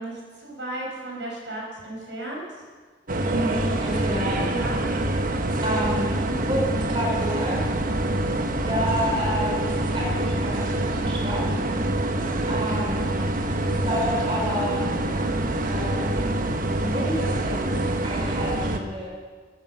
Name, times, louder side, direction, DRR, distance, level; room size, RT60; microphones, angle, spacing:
voice 1, 0.0-2.4 4.4-4.8 5.3-6.5 12.8-13.3, right 1 dB, 80° right, -2 dB, 4.6 m, -35 dB
sound 1, 3.1-18.8, right 1 dB, 50° right, 1.0 m, -25 dB
voice 2, 3.2-4.4 5.6-7.6 8.7-11.6 12.5-13.0 13.6-14.8 15.7-16.4 16.7-19.1, equal, 30° right, -2 dB, 3.1 m, -30 dB
13.0 x 9.6 x 7.0 m, 1.5 s
head